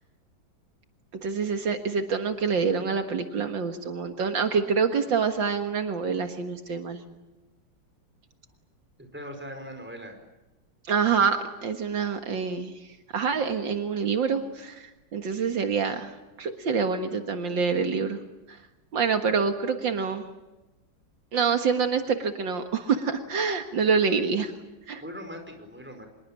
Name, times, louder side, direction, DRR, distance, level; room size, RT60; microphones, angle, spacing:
voice 1, 1.2-7.0 10.9-12.7 13.1-18.2 18.5-18.6 18.9-20.2 21.3-24.5 24.9-25.0, right 5 dB, 75° right, 6 dB, 2.3 m, -26 dB
voice 2, 9.0-10.1 25.0-26.1, equal, 5° right, 5 dB, 4.9 m, -40 dB
25.5 x 22.0 x 8.7 m, 1.0 s
omnidirectional pair, 2.1 m